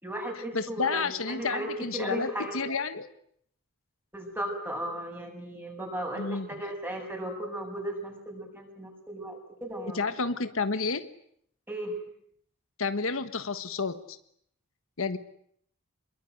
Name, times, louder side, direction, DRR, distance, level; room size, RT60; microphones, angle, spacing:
voice 1, 0.0-2.6 4.1-10.1 11.7-11.9, right 1 dB, 10° right, 3 dB, 7.1 m, -36 dB
voice 2, 0.5-3.1 6.2-6.5 9.9-11.1 12.8-14.2 15.0-15.2, left 4 dB, 65° left, 11 dB, 1.4 m, -30 dB
27.0 x 22.5 x 9.4 m, 0.69 s
head